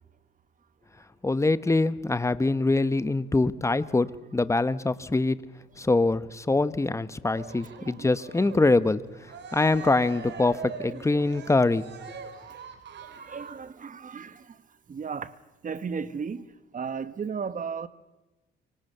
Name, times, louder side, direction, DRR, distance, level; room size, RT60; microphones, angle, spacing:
voice 1, 1.2-5.4 5.8-11.9, left 2 dB, 15° left, 1.1 m, -24 dB
Cheering, 7.3-13.7, right 5 dB, 65° right, 3.2 m, -42 dB
voice 2, 10.9-11.2 13.0-14.6 14.9-15.3 15.6-16.4 16.7-17.9, right 6 dB, 40° right, 1.4 m, -35 dB
26.0 x 25.0 x 6.8 m
cardioid pair, 90°, 20 cm